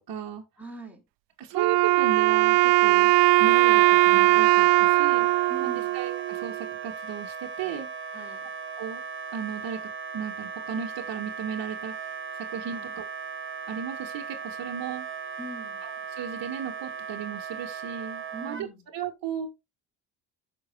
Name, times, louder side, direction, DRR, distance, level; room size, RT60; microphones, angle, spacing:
voice 1, 0.1-0.4 1.4-5.3 5.6-7.9 8.8-9.0 9.3-12.1 12.5-13.0 13.7-15.1 15.8-15.9 16.2-18.7 18.9-19.5, right 8 dB, 50° right, 1.6 m, -35 dB
voice 2, 0.6-1.0 5.5-6.0 8.1-8.5 12.7-12.9 15.4-15.9 18.3-18.9, right 1 dB, 5° right, 3.8 m, -43 dB
Wind instrument woodwind instrument, 1.5-6.7, right 19 dB, 65° right, 0.6 m, -20 dB
Wind instrument woodwind instrument 2, 3.4-18.7, right 6 dB, 25° right, 1.4 m, -37 dB
15.0 x 5.9 x 2.3 m
hypercardioid pair, 60°, 45 cm